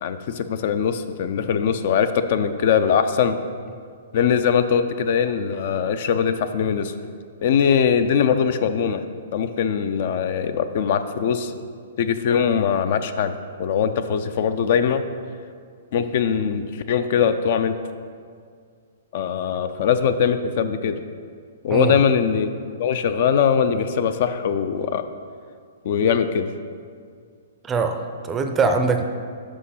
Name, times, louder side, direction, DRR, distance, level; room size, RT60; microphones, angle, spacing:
voice 1, 0.0-3.4 4.1-6.9 7.4-9.0 9.3-11.5 12.0-13.3 13.6-15.0 15.9-17.8 19.1-21.0 21.6-22.5 22.8-25.1 25.8-26.5, left 7 dB, 50° left, 10 dB, 0.4 m, -21 dB
voice 2, 27.6-29.0, right 4 dB, 15° right, 6 dB, 0.5 m, -22 dB
6.1 x 5.4 x 5.6 m, 2.1 s
hypercardioid pair, 150°, 0 cm